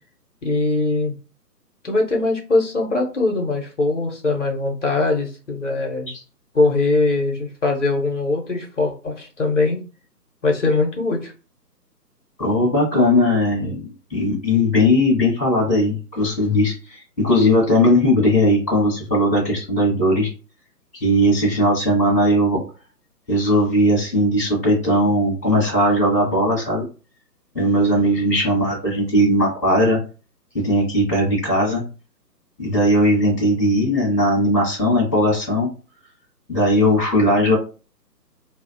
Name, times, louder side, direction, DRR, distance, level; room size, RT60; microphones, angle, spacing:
voice 1, 0.4-1.1 1.8-6.1 6.5-9.8 10.4-11.3, left 3 dB, 50° left, 1 dB, 0.7 m, -21 dB
voice 2, 12.4-20.3 21.0-22.6 23.3-26.8 27.5-30.0 30.5-31.8 32.6-35.7 36.5-37.6, left 1 dB, 10° left, -10 dB, 0.7 m, -18 dB
2.6 x 2.0 x 2.5 m, 0.35 s
figure-of-eight pair, 140°, 49 cm